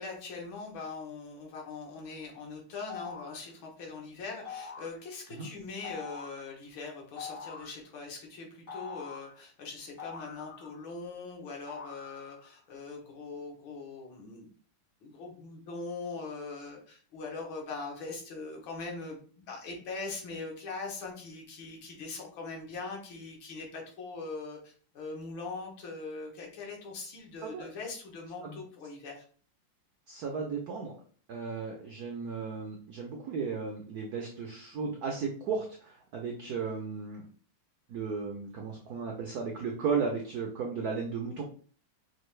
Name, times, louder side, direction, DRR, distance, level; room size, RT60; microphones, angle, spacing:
voice 1, 0.0-14.5 15.0-29.3, left 3 dB, 70° left, 0 dB, 1.7 m, -41 dB
sound 1, 2.9-3.4 4.4-5.0 5.8-6.4 7.2-7.8 8.7-9.4 10.0-10.9 11.7-12.5, left 6 dB, 90° left, 2.7 m, -44 dB
voice 2, 30.1-30.9 31.3-37.3 37.9-41.4, right 5 dB, 75° right, 1 dB, 0.9 m, -35 dB
5.4 x 2.4 x 3.1 m, 0.43 s
omnidirectional pair, 2.3 m